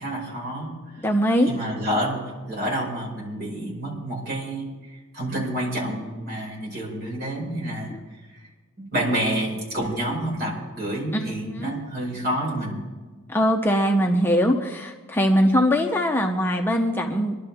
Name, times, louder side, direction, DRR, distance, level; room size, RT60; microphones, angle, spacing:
voice 1, 0.0-0.8 1.5-4.7 5.1-7.9 8.8-12.8, right 1 dB, 50° right, -3 dB, 5.3 m, -28 dB
voice 2, 1.0-1.5 7.9-8.0 11.1-11.8 13.3-17.5, equal, 10° left, 2 dB, 0.7 m, -22 dB
24.0 x 11.5 x 3.6 m, 1.3 s
head